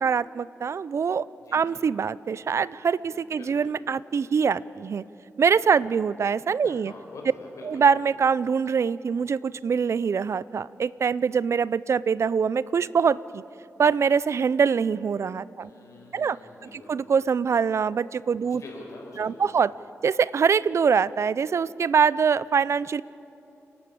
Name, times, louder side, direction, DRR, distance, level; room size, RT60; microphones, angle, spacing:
voice 1, 0.0-1.3 1.5-5.0 5.4-6.9 7.6-13.4 13.8-15.7 16.1-16.4 16.7-18.6 19.2-19.7 20.0-23.0, right 6 dB, 60° right, 20 dB, 0.4 m, -24 dB
voice 2, 1.4-1.9 3.0-3.7 6.6-7.8 15.6-17.0 18.4-19.5, left 2 dB, 80° left, 0 dB, 5.1 m, -45 dB
29.0 x 11.5 x 8.6 m, 2.9 s
wide cardioid pair, 85°, 5 cm